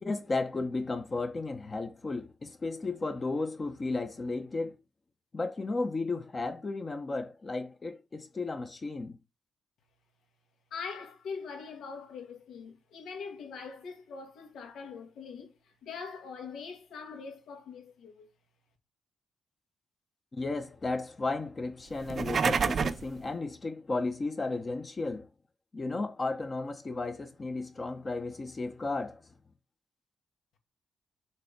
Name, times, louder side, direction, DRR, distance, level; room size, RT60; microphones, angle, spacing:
voice 1, 0.0-4.8 5.3-9.2 20.3-25.3 25.7-29.2, left 3 dB, 25° left, 0.8 m, -34 dB
voice 2, 10.7-18.3, left 5 dB, 85° left, 2.0 m, -42 dB
sound 1, 22.0-23.1, right 5 dB, 40° right, 0.4 m, -28 dB
6.7 x 3.4 x 5.1 m
wide cardioid pair, 155°, 0 cm